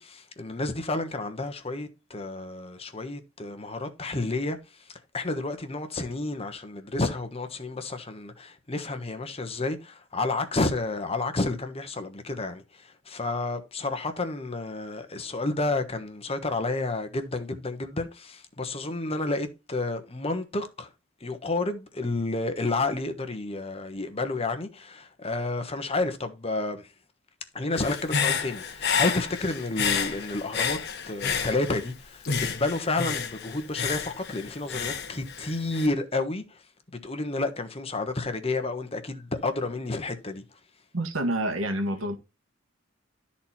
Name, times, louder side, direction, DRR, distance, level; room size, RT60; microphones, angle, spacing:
voice 1, 0.0-20.9 21.2-26.9 27.5-30.8 31.1-36.6 37.0-40.6, left 2 dB, 30° left, 1.3 m, -30 dB
Human voice / Breathing, 27.8-31.9 32.2-35.9, left 6 dB, 55° left, 1.0 m, -30 dB
voice 2, 40.9-42.2, right 1 dB, 80° right, 1.8 m, -28 dB
12.5 x 4.3 x 4.4 m
head